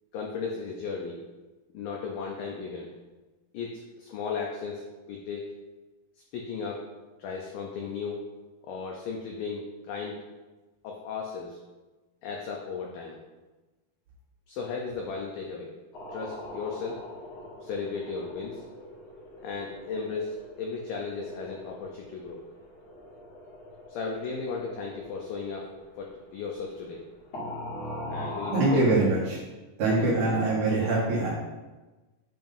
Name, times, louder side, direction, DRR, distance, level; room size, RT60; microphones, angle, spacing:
voice 1, 0.1-1.2 1.7-2.9 3.5-5.5 6.3-6.8 7.2-8.3 8.6-10.2 10.8-11.6 12.2-13.2 14.5-15.7 16.1-17.0 17.6-18.6 19.4-22.4 23.9-25.7 26.0-27.1 28.1-28.8 29.8-30.4, left 5 dB, 90° left, 0 dB, 2.0 m, -35 dB
sound 1, 15.9-27.1 27.3-28.9, left 1 dB, 55° left, 2.0 m, -42 dB
voice 2, 28.5-29.4 29.8-31.3, right 2 dB, 65° right, -6 dB, 2.3 m, -24 dB
7.3 x 2.6 x 5.3 m, 1.2 s
omnidirectional pair, 4.8 m